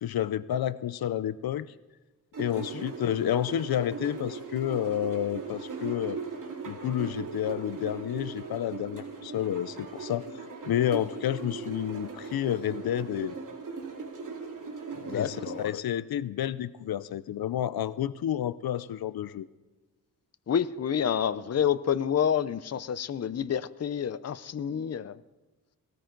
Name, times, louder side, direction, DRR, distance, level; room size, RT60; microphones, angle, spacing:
voice 1, 0.0-1.7 2.4-6.2 6.6-13.4 15.1-19.5, left 11 dB, 85° left, 16 dB, 0.6 m, -30 dB
sound 1, 2.3-15.7, right 4 dB, 60° right, 2.8 m, -39 dB
voice 2, 2.5-2.8 14.9-15.8 20.5-25.2, left 8 dB, 45° left, 14 dB, 0.6 m, -29 dB
19.0 x 18.5 x 3.9 m, 1.2 s
wide cardioid pair, 115°, 35 cm